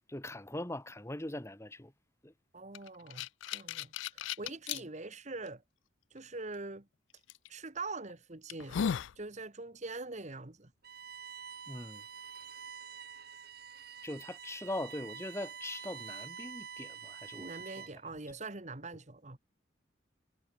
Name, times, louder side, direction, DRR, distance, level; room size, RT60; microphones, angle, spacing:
voice 1, 0.1-1.9 2.2-2.3 11.7-12.0 14.0-17.9, left 1 dB, 15° left, 1.7 m, -41 dB
voice 2, 2.5-5.6 6.1-6.9 7.5-8.8 9.2-10.7 17.4-19.4, right 3 dB, 40° right, 1.7 m, -43 dB
sound 1, 2.7-4.8 5.5-5.6 7.3-7.5 8.0-8.1 8.5-9.2, left 8 dB, 85° left, 0.4 m, -35 dB
Bowed string instrument, 10.8-18.1, right 7 dB, 55° right, 7.9 m, -47 dB
head